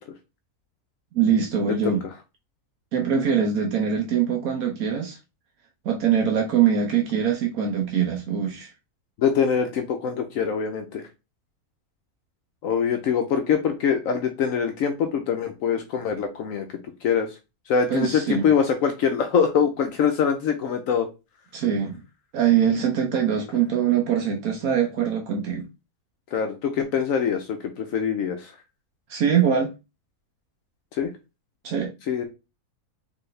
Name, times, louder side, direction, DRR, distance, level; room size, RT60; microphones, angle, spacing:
voice 1, 1.1-2.0 2.9-5.2 5.8-8.7 17.9-18.5 21.5-22.0 22.3-25.6 29.1-29.7 31.6-31.9, right 8 dB, 75° right, 1.2 m, -23 dB
voice 2, 9.2-11.0 12.6-16.7 17.0-17.3 17.7-21.1 26.3-28.5 31.0-31.1 32.1-32.3, left 7 dB, 70° left, 1.0 m, -23 dB
4.4 x 3.5 x 3.2 m
omnidirectional pair, 1.5 m